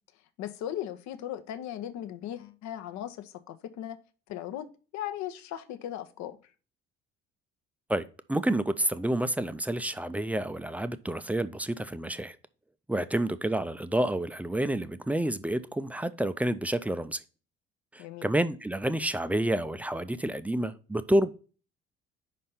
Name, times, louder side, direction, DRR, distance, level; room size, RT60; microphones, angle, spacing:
voice 1, 0.4-4.0 4.3-4.7 4.9-6.4 18.0-18.3, left 11 dB, 55° left, 0.8 m, -37 dB
voice 2, 7.9-12.4 12.9-17.2 17.9-21.3, right 1 dB, 5° right, 0.4 m, -29 dB
5.4 x 4.2 x 5.6 m
figure-of-eight pair, 55°, 33 cm